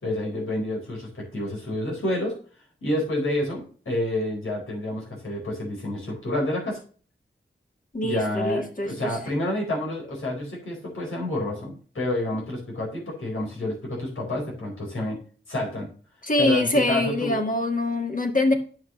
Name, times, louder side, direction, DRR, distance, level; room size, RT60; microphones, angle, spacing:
voice 1, 0.0-2.3 2.8-6.8 8.0-15.2 15.5-15.9 16.4-17.4, left 1 dB, 90° left, -3 dB, 4.5 m, -29 dB
voice 2, 7.9-9.1 16.2-18.5, left 2 dB, 40° left, 3 dB, 1.8 m, -24 dB
9.4 x 6.3 x 3.1 m, 0.41 s
cardioid pair, 45°, 20 cm